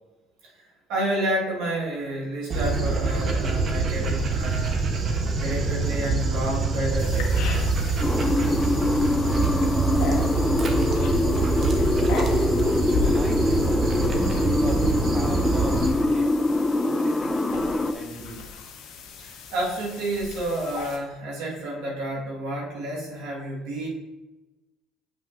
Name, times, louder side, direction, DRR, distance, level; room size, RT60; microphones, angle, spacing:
voice 1, 0.9-4.8 5.4-7.4 19.2-23.9, right 1 dB, 80° right, -3 dB, 1.8 m, -30 dB
Dog, 2.5-15.9, right 4 dB, 45° right, 1.0 m, -25 dB
sound 1, 7.0-21.0, left 4 dB, 75° left, 1.0 m, -37 dB
sound 2, 8.0-17.9, left 2 dB, 15° left, 0.4 m, -24 dB
voice 2, 13.1-16.3 16.8-18.5, right 2 dB, 30° right, 1 dB, 1.5 m, -38 dB
7.5 x 5.8 x 2.6 m, 1.1 s
supercardioid pair, 80°, 0 cm